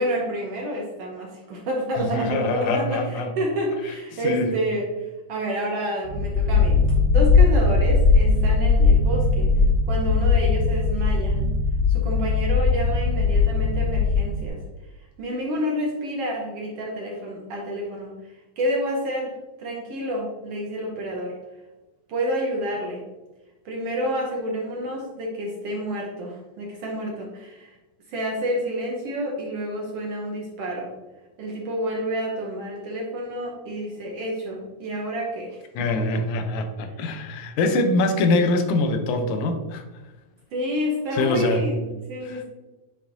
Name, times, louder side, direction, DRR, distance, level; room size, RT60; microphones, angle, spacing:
voice 1, 0.0-6.8 7.1-9.5 9.9-11.4 11.9-14.6 15.2-19.3 19.6-21.4 22.1-23.0 23.6-27.8 28.1-30.9 31.4-35.6 36.1-36.2 36.9-37.0 40.5-42.4, equal, 65° right, -1 dB, 1.6 m, -29 dB
voice 2, 2.0-3.3 4.2-4.5 35.8-39.8 41.1-41.6 42.3-42.4, left 2 dB, 80° left, 6 dB, 2.1 m, -24 dB
sound 1, 6.1-14.5, left 4 dB, 85° right, 2.2 m, -19 dB
7.3 x 5.1 x 2.6 m, 1.1 s
omnidirectional pair, 3.5 m